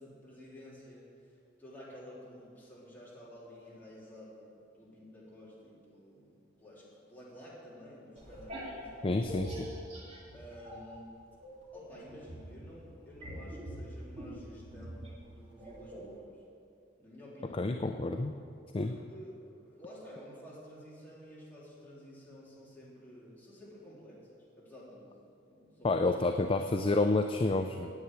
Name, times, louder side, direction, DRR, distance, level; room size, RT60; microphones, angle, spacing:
voice 1, 0.0-9.3 10.3-11.1 11.7-16.4 17.0-17.7 18.8-25.1 25.5-26.1, equal, 10° left, -8 dB, 3.5 m, -51 dB
sound 1, 8.2-11.0 11.4-16.2, right 1 dB, 35° right, 2.4 m, -44 dB
voice 2, 9.0-9.7 17.6-18.4 18.7-18.9 25.8-27.9, left 2 dB, 30° left, 6 dB, 0.4 m, -29 dB
9.9 x 7.9 x 8.8 m, 2.5 s
head